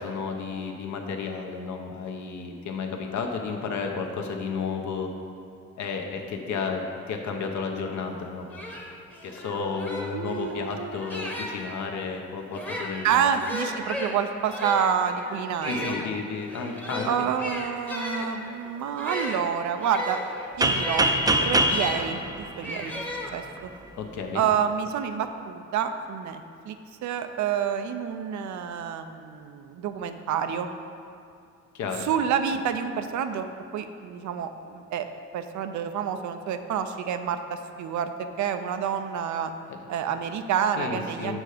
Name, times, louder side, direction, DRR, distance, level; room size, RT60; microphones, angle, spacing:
voice 1, 0.0-5.1 5.8-8.5 9.2-13.3 15.6-17.3 24.0-24.4 31.7-32.1 39.7-39.8 40.8-41.4, left 5 dB, 70° left, 3 dB, 0.9 m, -32 dB
sound 1, 8.1-8.2 8.5-11.8 12.5-22.1 22.6-23.7, left 1 dB, 5° left, 0.9 m, -36 dB
voice 2, 10.1-11.0 13.0-16.0 17.1-20.2 20.6-21.1 21.4-23.0 23.3-23.7 24.3-26.8 27.0-30.7 32.0-33.5 33.7-35.1 35.3-39.5 39.9-41.4, right 8 dB, 70° right, 8 dB, 0.6 m, -28 dB
sound 2, 20.6-23.4, right 1 dB, 15° right, 0.5 m, -24 dB
6.2 x 5.6 x 4.9 m, 2.5 s
cardioid pair, 90°, 30 cm